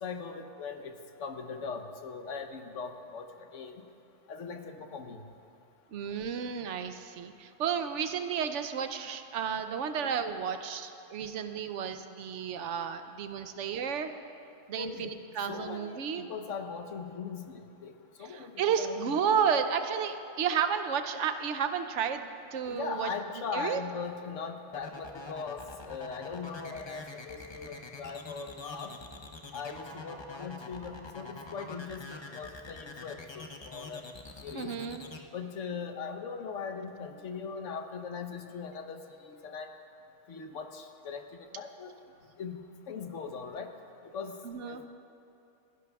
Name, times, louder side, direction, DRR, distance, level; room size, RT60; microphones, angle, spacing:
voice 1, 0.0-0.9 1.2-3.8 4.3-5.2 14.8-17.9 18.2-19.1 22.6-28.9 29.5-34.0 34.4-34.7 35.3-39.7 40.3-41.9 42.4-43.7 44.1-44.3 44.6-44.9, left 5 dB, 90° left, 6 dB, 1.2 m, -40 dB
voice 2, 5.9-14.1 14.7-16.3 18.3-23.1 23.5-23.8 34.5-35.0 44.4-44.8, right 7 dB, 80° right, 9 dB, 1.0 m, -32 dB
sound 1, 24.7-35.2, left 3 dB, 30° left, 0.6 m, -45 dB
29.5 x 11.0 x 2.3 m, 2.7 s
omnidirectional pair, 1.2 m